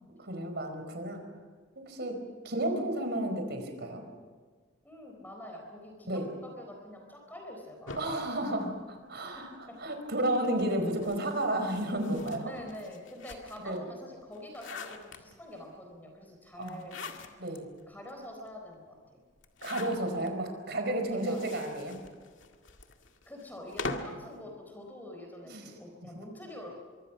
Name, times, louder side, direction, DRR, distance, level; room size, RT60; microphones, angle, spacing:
voice 1, 0.2-1.2 1.7-4.0 6.1-6.3 8.0-9.5 9.8-12.5 13.6-13.8 16.6-16.8 17.4-17.7 19.6-22.0 25.5-25.6, right 1 dB, 60° right, 5 dB, 4.7 m, -32 dB
voice 2, 4.8-8.0 9.1-9.8 12.4-17.3 17.9-19.2 21.1-21.4 23.3-26.7, left 1 dB, 10° left, 1 dB, 4.1 m, -46 dB
sound 1, 7.9-9.5 10.3-13.8 14.2-15.6 16.6-17.6 18.1-18.2 18.4-18.5 19.4-20.3 21.0-24.3, left 3 dB, 80° left, 2.1 m, -43 dB
24.5 x 24.0 x 6.0 m, 1.5 s
head